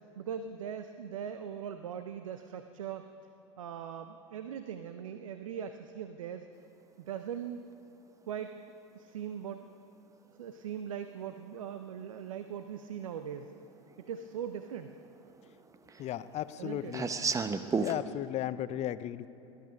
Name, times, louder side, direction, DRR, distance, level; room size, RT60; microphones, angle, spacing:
voice 1, 0.2-3.1 3.6-6.5 7.0-7.6 8.2-8.5 8.9-9.7 10.4-13.5 14.0-15.0 16.6-17.0, right 8 dB, 85° right, 9 dB, 0.6 m, -40 dB
sound 1, 11.4-11.5 12.8-12.9 13.4-13.5 13.7-14.4 14.7-18.0, right 4 dB, 20° right, 0.8 m, -33 dB
voice 2, 16.0-17.1 17.8-19.3, left 12 dB, 40° left, 14 dB, 0.6 m, -35 dB
19.0 x 11.5 x 5.2 m, 3.0 s
hypercardioid pair, 85°, 17 cm